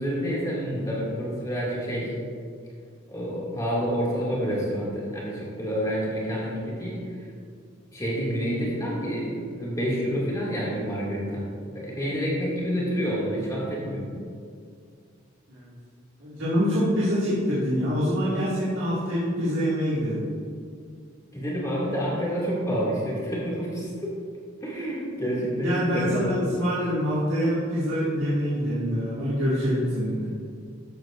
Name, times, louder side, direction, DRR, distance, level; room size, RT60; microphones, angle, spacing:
voice 1, 0.0-2.1 3.1-7.0 7.9-11.4 11.7-14.1 21.3-24.1 24.6-26.5, equal, 15° left, -6 dB, 2.3 m, -28 dB
voice 2, 16.2-20.2 25.4-30.3, equal, 80° right, -10 dB, 2.2 m, -25 dB
14.0 x 8.5 x 2.5 m, 2.3 s
head